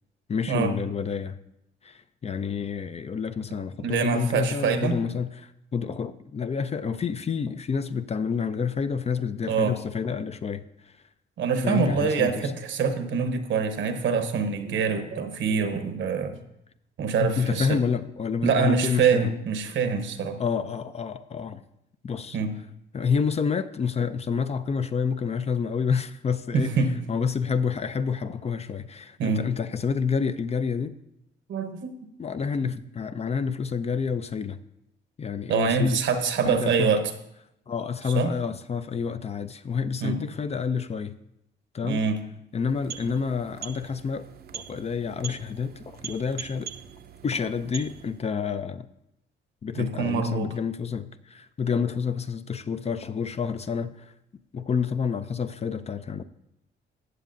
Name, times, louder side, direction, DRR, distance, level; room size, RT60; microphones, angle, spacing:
voice 1, 0.3-1.4 1.8-10.6 11.6-12.5 17.2-19.4 20.4-21.6 22.0-22.4 22.9-30.9 32.2-34.6 35.2-36.0 36.4-36.9 37.7-41.2 41.7-42.0 42.5-44.3 44.5-46.7 47.2-48.9 49.6-54.1 54.5-56.2, left 6 dB, 30° left, 0.5 m, -29 dB
voice 2, 3.8-5.0 9.5-9.8 11.4-16.4 17.0-17.8 18.4-20.4 22.3-22.6 26.5-27.0 29.2-29.4 31.5-32.0 35.5-37.1 38.1-38.3 40.0-40.2 41.8-42.2 49.8-50.6, right 5 dB, 70° right, 1.0 m, -25 dB
sound 1, 42.5-48.3, right 7 dB, 50° right, 0.6 m, -42 dB
14.5 x 8.2 x 2.6 m
cardioid pair, 90°, 20 cm